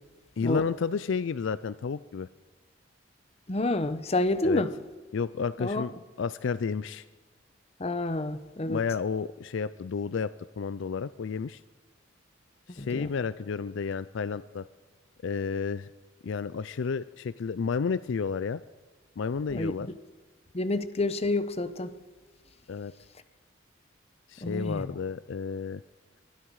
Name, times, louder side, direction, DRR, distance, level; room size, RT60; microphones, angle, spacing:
voice 1, 0.4-2.3 4.4-4.6 5.1-7.0 8.6-11.6 12.7-14.7 15.2-15.9 16.2-18.6 19.2-19.9 22.7-22.9 24.3-25.8, left 5 dB, 70° left, 0.4 m, -31 dB
voice 2, 3.5-4.7 5.6-5.9 7.8-8.8 12.8-13.1 19.5-19.7 20.5-21.9 24.4-24.9, left 2 dB, 30° left, 0.9 m, -28 dB
22.5 x 12.5 x 4.8 m
head